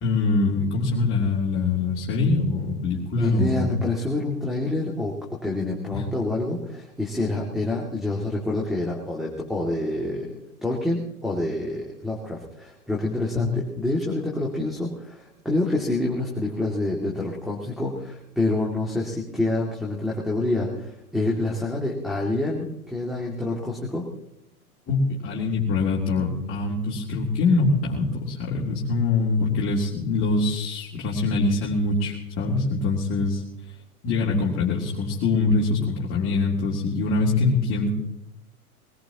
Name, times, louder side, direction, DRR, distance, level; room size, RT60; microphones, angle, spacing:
voice 1, 0.0-3.7 5.9-6.0 13.3-13.6 24.9-33.4 34.0-37.9, left 3 dB, 30° left, -4 dB, 3.3 m, -24 dB
voice 2, 3.2-24.1, left 2 dB, ahead, -5 dB, 2.5 m, -27 dB
22.0 x 20.0 x 3.0 m, 0.84 s
figure-of-eight pair, 105°, 45 cm